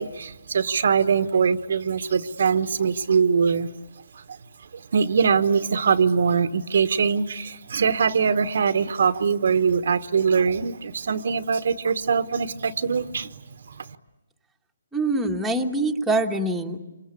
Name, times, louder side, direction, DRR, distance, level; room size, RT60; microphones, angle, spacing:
voice 1, 0.0-3.7 4.1-4.4 4.7-13.4 13.7-13.9, right 6 dB, 60° right, 11 dB, 1.2 m, -22 dB
voice 2, 14.9-16.8, right 2 dB, ahead, -1 dB, 1.4 m, -24 dB
28.0 x 25.5 x 8.5 m, 1.1 s
hypercardioid pair, 165°, 0 cm